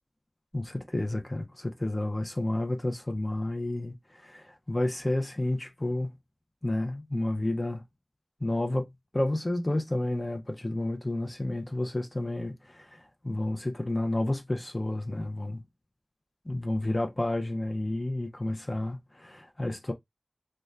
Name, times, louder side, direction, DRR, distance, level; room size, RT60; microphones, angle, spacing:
voice 1, 0.5-6.1 6.6-7.8 8.4-15.6 16.4-19.9, left 1 dB, 30° left, 0.6 m, -31 dB
2.5 x 2.2 x 3.3 m
wide cardioid pair, 60°, 0 cm